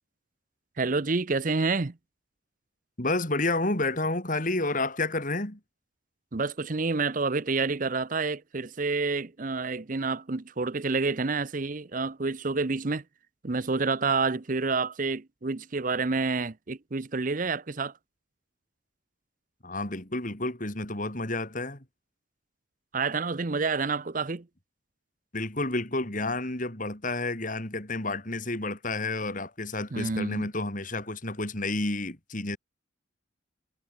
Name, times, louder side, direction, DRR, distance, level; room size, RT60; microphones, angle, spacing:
voice 1, 0.8-2.0 6.3-13.0 13.4-17.9 22.9-24.5 29.9-30.5, right 4 dB, 40° right, 0.7 m, -28 dB
voice 2, 3.0-5.6 19.6-21.8 25.3-32.6, left 2 dB, 40° left, 3.5 m, -30 dB
head